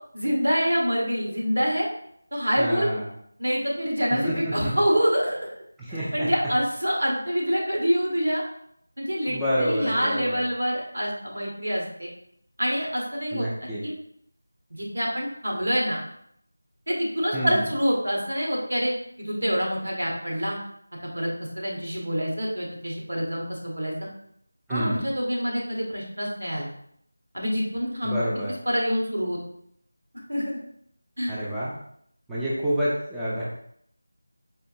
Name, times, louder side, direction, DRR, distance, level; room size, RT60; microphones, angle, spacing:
voice 1, 0.1-1.9 2.3-2.9 3.4-5.4 5.9-8.4 9.0-12.1 12.6-13.9 14.7-16.0 16.9-20.6 21.1-21.3 21.6-24.1 24.7-26.7 27.3-28.2 28.7-29.4 30.3-30.6 31.2-31.3, equal, 80° right, -2 dB, 1.2 m, -26 dB
voice 2, 2.6-3.1 4.1-4.7 5.8-6.3 9.3-10.4 13.3-13.8 17.3-17.7 24.7-25.0 28.0-28.5 31.3-31.7 32.3-33.4, equal, 5° right, -10 dB, 0.4 m, -28 dB
4.3 x 2.7 x 2.6 m, 0.69 s
figure-of-eight pair, 170°, 0 cm